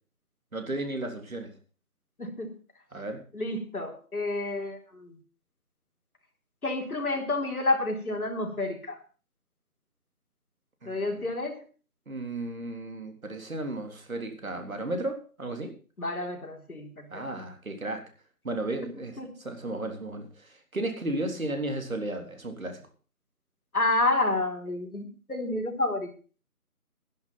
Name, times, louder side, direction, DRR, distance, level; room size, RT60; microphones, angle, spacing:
voice 1, 0.5-1.5 2.9-3.2 10.8-11.3 12.1-15.7 17.1-18.0 18.4-22.8, right 2 dB, 65° right, 5 dB, 3.8 m, -34 dB
voice 2, 2.2-2.5 3.3-5.2 6.6-9.0 10.9-11.6 16.0-17.2 19.2-19.3 23.7-26.1, left 2 dB, 75° left, 2 dB, 3.9 m, -29 dB
12.0 x 11.0 x 5.9 m, 0.38 s
figure-of-eight pair, 165°, 45 cm